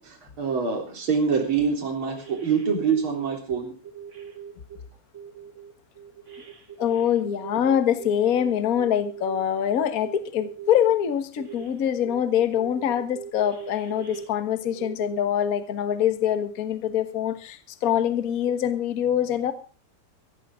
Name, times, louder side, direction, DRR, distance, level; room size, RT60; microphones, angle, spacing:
voice 1, 0.0-3.7, right 6 dB, 40° right, 4.2 m, -25 dB
sound 1, 2.1-3.3 3.8-4.8 5.1-9.4 10.0-11.0 11.4-11.7 12.0-15.2, right 8 dB, 25° right, 2.3 m, -41 dB
voice 2, 6.8-19.5, left 9 dB, 45° left, 1.2 m, -24 dB
16.0 x 15.0 x 3.7 m
omnidirectional pair, 3.4 m